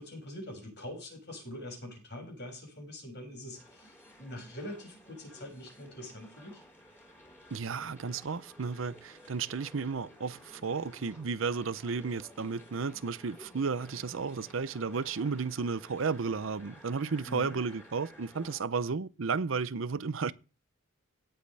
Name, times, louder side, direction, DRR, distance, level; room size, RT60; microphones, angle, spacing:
voice 1, 0.0-6.6 17.3-17.6, left 1 dB, 55° left, 6.8 m, -44 dB
sound 1, 3.5-18.6, equal, 10° left, 4.3 m, -54 dB
voice 2, 7.5-20.3, right 5 dB, 75° right, 0.6 m, -33 dB
17.5 x 7.8 x 3.4 m
head